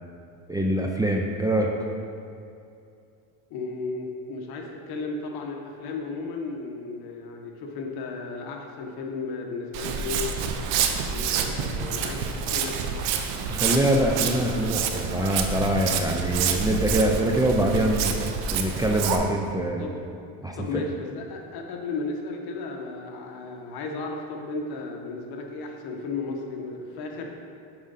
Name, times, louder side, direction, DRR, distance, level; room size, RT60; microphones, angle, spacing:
voice 1, 0.5-1.7 13.5-18.1 18.5-19.8 20.4-20.8, right 1 dB, 10° right, 0 dB, 0.5 m, -24 dB
voice 2, 3.5-10.3 11.1-12.8 19.8-19.9 20.6-27.3, left 3 dB, 60° left, 2 dB, 1.2 m, -34 dB
Walk footsteps, 9.7-19.2, right 6 dB, 85° right, 0.7 m, -28 dB
7.4 x 5.0 x 4.1 m, 2.6 s
supercardioid pair, 100°, 42 cm